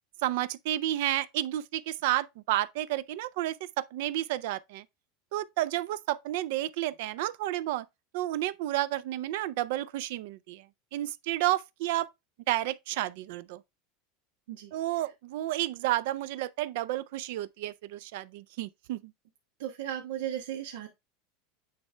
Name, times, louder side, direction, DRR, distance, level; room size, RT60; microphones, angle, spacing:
voice 1, 0.2-4.8 5.3-7.8 8.1-10.6 10.9-12.1 12.5-13.6 14.7-19.1, right 14 dB, 60° right, 0.4 m, -31 dB
voice 2, 19.6-20.9, right 11 dB, 90° right, 1.2 m, -35 dB
9.2 x 3.3 x 3.3 m
supercardioid pair, 170°, 0 cm